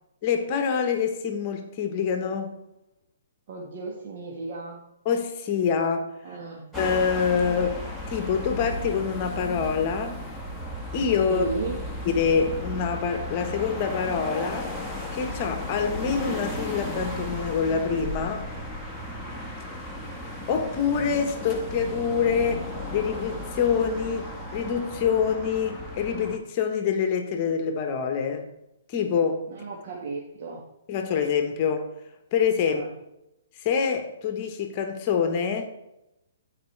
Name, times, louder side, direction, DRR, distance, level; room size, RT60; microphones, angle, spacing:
voice 1, 0.2-2.6 5.0-6.2 6.7-7.8 8.1-10.2 10.9-11.5 12.0-14.7 15.1-18.5 20.5-28.5 28.9-29.5 30.9-31.9 32.3-32.8 33.6-35.7, left 6 dB, 35° left, 1.2 m, -26 dB
voice 2, 3.5-4.9 6.2-6.7 11.3-11.8 29.5-30.6 32.6-32.9, right 3 dB, 50° right, 1.5 m, -34 dB
sound 1, 6.7-26.4, left 1 dB, ahead, 1.4 m, -35 dB
14.0 x 4.8 x 3.3 m
hypercardioid pair, 140°, 0 cm